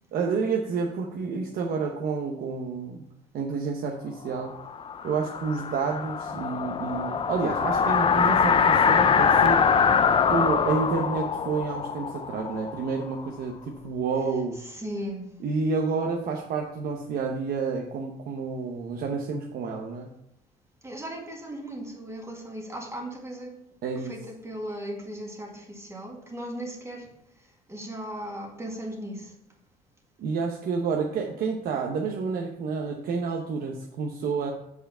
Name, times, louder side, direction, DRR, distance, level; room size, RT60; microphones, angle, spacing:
voice 1, 0.1-3.0 3.3-4.5 5.0-9.6 10.3-14.6 15.4-20.1 23.8-24.1 30.2-34.5, right 5 dB, 60° right, 1.0 m, -29 dB
sound 1, 4.4-13.3, left 6 dB, 30° left, 0.5 m, -23 dB
voice 2, 14.5-15.3 20.8-23.6 24.0-27.1 27.7-29.3, right 1 dB, 15° right, 2.0 m, -37 dB
7.9 x 4.8 x 5.5 m
cardioid pair, 110°, 17 cm